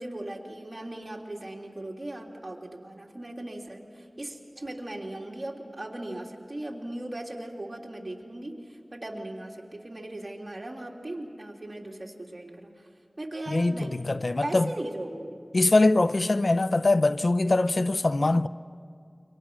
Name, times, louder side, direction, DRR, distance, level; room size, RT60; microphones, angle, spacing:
voice 1, 0.0-12.7 13.2-14.2 14.4-15.4, right 1 dB, 55° right, 3.2 m, -38 dB
voice 2, 13.5-14.7 15.5-18.5, left 2 dB, 75° left, 0.5 m, -23 dB
29.0 x 24.5 x 6.2 m
wide cardioid pair, 45°, 0 cm